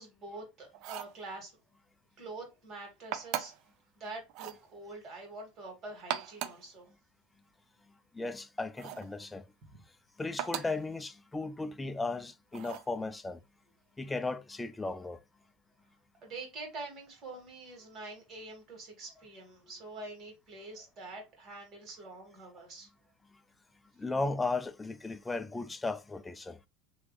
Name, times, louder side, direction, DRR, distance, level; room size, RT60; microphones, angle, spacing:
voice 1, 0.0-1.5 2.2-3.5 4.0-6.9 9.7-9.8 16.2-22.9, right 2 dB, 35° right, 2.1 m, -45 dB
sound 1, 0.7-1.2 3.1-3.7 4.3-4.6 5.9-6.7 8.8-9.1 10.4-10.8 12.5-12.9, right 11 dB, 55° right, 0.5 m, -38 dB
voice 2, 8.1-9.4 10.2-13.4 14.0-15.2 24.0-26.6, left 3 dB, 10° left, 0.4 m, -35 dB
3.3 x 3.0 x 3.2 m
supercardioid pair, 140°, 0 cm